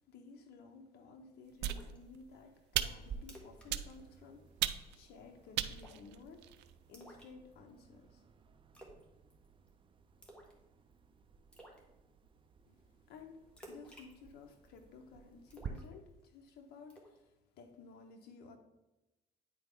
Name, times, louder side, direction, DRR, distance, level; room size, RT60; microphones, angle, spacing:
voice 1, 0.0-4.7 4.9-8.2 12.7-12.8 13.1-18.6, left 4 dB, 70° left, 4 dB, 0.9 m, -55 dB
Splash splatter, 1.6-2.0 2.3-2.4 2.9-3.0 3.2-3.7 3.9-4.1 4.5-4.8 5.7-6.1 6.9-7.8 8.7-9.0 9.3-9.7 10.2-10.6 10.9-11.0 11.5-11.8 13.6-14.8 15.5-16.4 16.9-17.2, right 1 dB, 5° left, 1.7 m, -55 dB
sound 1, 1.6-2.2 2.7-3.2 3.7-4.2 4.6-5.1 5.6-6.7, right 12 dB, 85° right, 0.4 m, -37 dB
sound 2, 3.0-15.7, right 6 dB, 30° right, 0.5 m, -54 dB
9.5 x 4.2 x 3.6 m, 1.0 s
cardioid pair, 110°, 17 cm